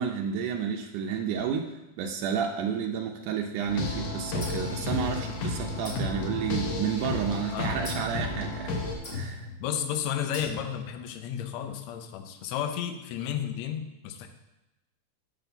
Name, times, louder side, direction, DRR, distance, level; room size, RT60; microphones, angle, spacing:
voice 1, 0.0-8.7 9.1-9.5, right 7 dB, 80° right, 1 dB, 2.1 m, -31 dB
sound 1, 3.7-9.0, left 2 dB, 90° left, 2.8 m, -32 dB
sound 2, 4.4-5.5 5.8-7.1 7.8-8.3 9.0-9.6 10.3-11.0, left 3 dB, 35° left, 2.4 m, -39 dB
voice 2, 9.6-14.3, left 9 dB, 75° left, 7 dB, 1.8 m, -32 dB
8.2 x 4.1 x 6.7 m, 0.95 s
omnidirectional pair, 3.6 m